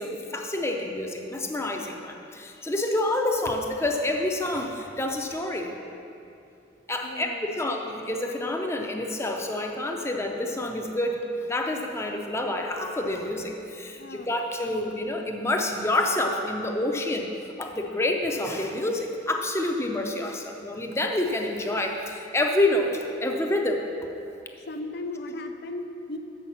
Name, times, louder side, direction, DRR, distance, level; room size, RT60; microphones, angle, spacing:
voice 1, 0.0-5.7 6.9-11.2 11.5-17.3 17.6-23.8, left 1 dB, 15° left, 3 dB, 0.6 m, -28 dB
voice 2, 7.0-7.5 14.0-14.3 24.7-26.2, left 2 dB, 55° left, 7 dB, 0.5 m, -36 dB
6.9 x 5.8 x 7.2 m, 2.7 s
head